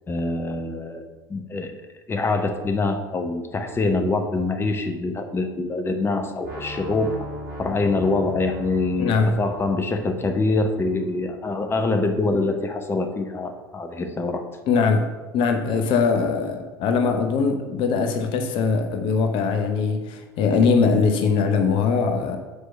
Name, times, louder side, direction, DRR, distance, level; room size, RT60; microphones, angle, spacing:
voice 1, 0.1-1.7 2.1-7.1 7.6-14.4, left 3 dB, 20° left, 5 dB, 0.9 m, -25 dB
sound 1, 6.4-12.4, equal, 70° right, 2.3 m, -40 dB
voice 2, 9.0-9.3 14.7-15.1 15.3-22.4, left 5 dB, 45° left, 5 dB, 0.9 m, -21 dB
6.5 x 4.7 x 6.6 m, 1.2 s
figure-of-eight pair, 70°, 12 cm